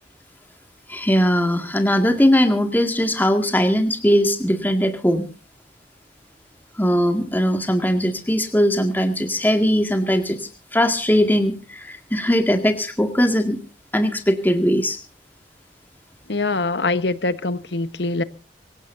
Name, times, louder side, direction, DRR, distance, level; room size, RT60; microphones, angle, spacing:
voice 1, 0.9-5.2 6.8-13.6 13.9-15.0, equal, 10° left, 2.0 m, -20 dB
voice 2, 16.3-18.2, left 3 dB, 75° left, 1.2 m, -23 dB
24.0 x 17.5 x 2.7 m
head